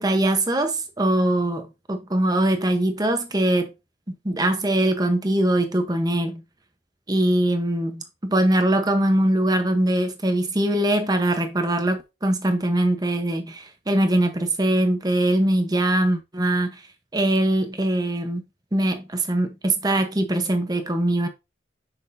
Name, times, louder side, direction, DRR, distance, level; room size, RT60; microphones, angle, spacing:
voice 1, 0.0-3.7 4.1-6.4 7.1-16.8 17.1-18.4 18.7-21.3, right 1 dB, 20° right, 0.9 m, -22 dB
6.3 x 6.0 x 2.6 m
head